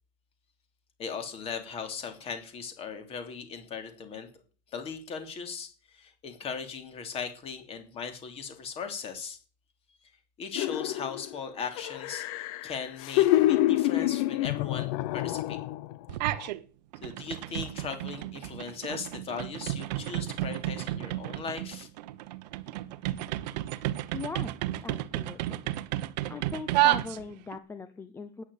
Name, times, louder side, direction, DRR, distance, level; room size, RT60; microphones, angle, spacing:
voice 1, 1.0-4.3 4.7-9.4 10.4-15.6 17.0-21.9, left 6 dB, 30° left, 7 dB, 2.9 m, -38 dB
sound 1, 10.6-11.4 11.8-15.9 16.3-16.5, left 15 dB, 55° left, 0.8 m, -27 dB
sound 2, 16.1-16.6 16.9-27.6, right 15 dB, 85° right, 1.0 m, -32 dB
voice 2, 24.1-24.6 24.8-25.7 26.3-28.4, left 4 dB, 10° left, 10 dB, 0.7 m, -40 dB
12.5 x 9.8 x 8.4 m, 0.40 s
supercardioid pair, 165°, 21 cm